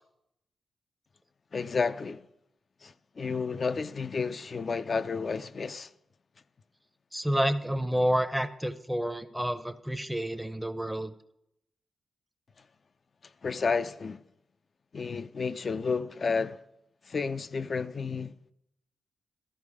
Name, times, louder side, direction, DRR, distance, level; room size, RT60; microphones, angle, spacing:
voice 1, 1.5-2.3 2.8-5.9 13.4-14.2 14.9-16.6 17.1-18.4, left 5 dB, 45° left, 0.4 m, -31 dB
voice 2, 7.1-11.1, equal, 5° right, 0.6 m, -29 dB
13.5 x 5.2 x 4.8 m
cardioid pair, 90°, 0 cm